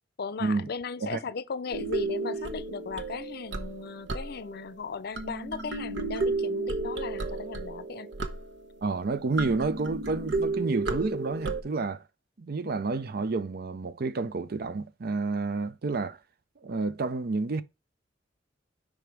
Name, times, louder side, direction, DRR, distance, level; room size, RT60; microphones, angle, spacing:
voice 1, 0.2-8.1, left 5 dB, 60° left, 0.5 m, -37 dB
sound 1, 1.7-4.7 5.2-8.8 9.3-11.6, right 3 dB, 75° right, 0.9 m, -32 dB
voice 2, 8.8-12.0 12.4-16.2 16.6-17.6, right 3 dB, 60° right, 0.5 m, -30 dB
5.1 x 5.0 x 4.5 m
head